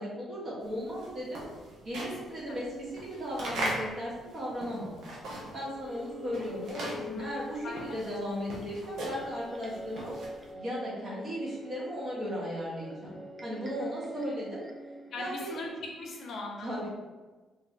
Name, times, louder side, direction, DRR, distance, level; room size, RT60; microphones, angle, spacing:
voice 1, 0.0-1.4 1.8-5.0 5.5-10.1 10.5-14.6 15.2-15.6 16.6-16.9, equal, 45° right, -6 dB, 1.2 m, -36 dB
sound 1, 0.7-5.7 6.0-10.5, right 1 dB, 75° right, 0.7 m, -39 dB
voice 2, 2.2-2.6 7.0-7.3 7.6-7.8 13.8-13.9 15.1-16.9, left 2 dB, 65° left, 0 dB, 0.6 m, -40 dB
sound 2, 5.4-15.7, left 1 dB, 25° right, 0.5 m, -46 dB
2.9 x 2.6 x 2.7 m, 1.3 s
cardioid pair, 90°, 0 cm